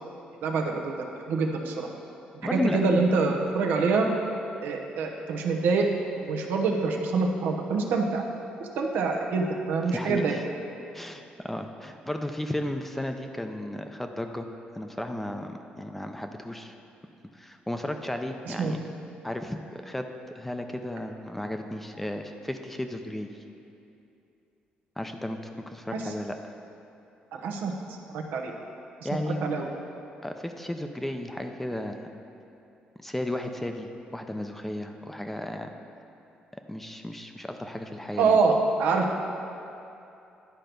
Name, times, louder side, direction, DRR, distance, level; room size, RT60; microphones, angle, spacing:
voice 1, 0.4-1.9 2.5-4.1 4.6-5.9 6.2-8.2 8.6-10.4 18.5-18.8 25.9-26.1 27.3-27.7 28.1-28.5 29.0-29.7 38.2-39.1, right 4 dB, 85° right, 2 dB, 0.8 m, -26 dB
voice 2, 2.4-2.8 9.9-10.4 10.9-14.5 14.7-16.8 17.3-18.8 19.2-20.1 20.3-23.3 25.0-25.4 25.7-26.5 29.0-29.6 30.2-32.1 33.0-35.7 36.7-38.4, left 1 dB, 5° left, 5 dB, 0.5 m, -34 dB
10.5 x 4.5 x 5.2 m, 2.8 s
cardioid pair, 110°, 3 cm